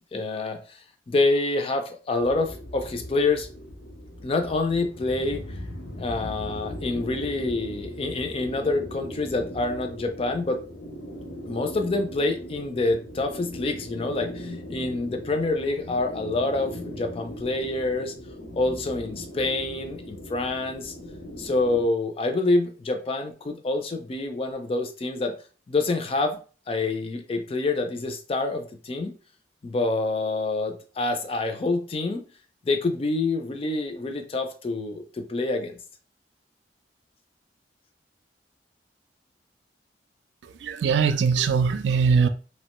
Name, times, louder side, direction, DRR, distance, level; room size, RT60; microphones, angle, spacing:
voice 1, 0.1-0.8 1.1-3.5 4.2-5.4 6.0-10.6 11.5-18.1 18.5-20.9 21.4-25.3 25.7-26.4 26.7-29.1 29.6-32.2 32.7-35.8, left 2 dB, 30° left, 0.4 m, -27 dB
sound 1, 2.2-21.9, equal, 75° left, 0.7 m, -39 dB
voice 2, 40.4-42.3, right 6 dB, 75° right, 0.3 m, -21 dB
2.8 x 2.1 x 2.9 m
head